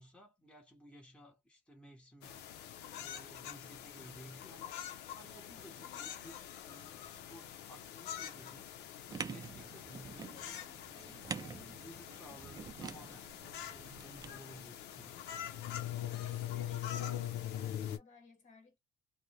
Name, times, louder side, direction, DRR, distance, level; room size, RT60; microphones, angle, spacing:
voice 1, 0.0-2.5 3.0-8.7 9.2-10.6 10.9-11.2 11.8-13.3 13.7-15.2, equal, 5° left, 1.0 m, -56 dB
sound 1, 2.2-18.0, left 11 dB, 85° left, 0.6 m, -44 dB
voice 2, 5.8-6.2 10.3-11.8 16.2-18.8, left 3 dB, 45° left, 1.3 m, -60 dB
sound 2, 9.1-14.3, right 5 dB, 25° right, 0.3 m, -47 dB
2.1 x 2.1 x 2.8 m
cardioid pair, 110°, 17 cm